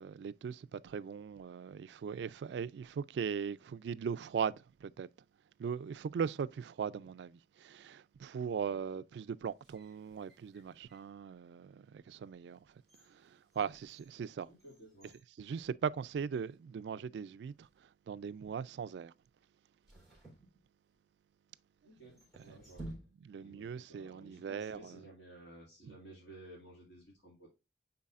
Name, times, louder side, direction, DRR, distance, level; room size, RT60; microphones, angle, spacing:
voice 1, 0.0-5.1 5.6-12.6 13.1-14.5 15.4-17.7 18.1-19.1 23.2-25.0 25.8-25.9, right 6 dB, 80° right, 0.3 m, -39 dB
sound 1, 9.4-11.2 11.8-11.9 12.5-16.2 16.5-16.6 17.4-17.8 19.8-21.2 22.0-23.6 23.8-23.9, right 1 dB, ahead, 3.4 m, -55 dB
voice 2, 14.4-15.1 21.8-22.8 23.4-27.5, right 1 dB, 85° left, 2.3 m, -55 dB
9.5 x 4.1 x 2.4 m
head